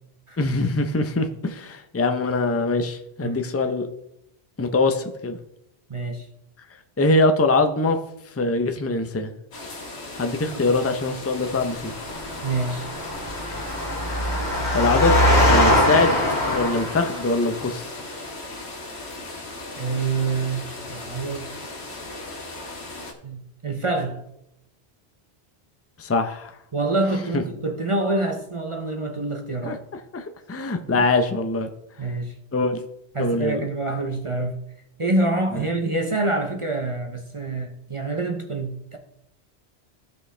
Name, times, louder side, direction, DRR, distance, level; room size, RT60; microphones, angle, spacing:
voice 1, 0.4-3.9 4.6-5.4 7.0-8.0 8.4-9.3 10.2-11.9 14.7-15.2 15.5-16.2 16.5-18.0 26.0-26.5 27.3-27.4 29.6-29.8 30.1-31.7 32.5-32.8 33.2-33.6 35.5-35.6, left 2 dB, 15° left, 7 dB, 0.5 m, -23 dB
voice 2, 5.9-6.3 10.5-10.6 12.4-12.9 19.8-21.5 23.2-24.2 26.7-29.8 30.9-31.1 32.0-32.3 33.1-34.6 35.0-39.0, right 2 dB, 35° right, 3 dB, 0.7 m, -26 dB
sound 1, 9.5-23.1, left 2 dB, 75° left, 1.7 m, -37 dB
Engine, 11.8-17.5, left 1 dB, 40° left, 2.5 m, -22 dB
15.0 x 5.3 x 3.3 m, 0.79 s
omnidirectional pair, 1.1 m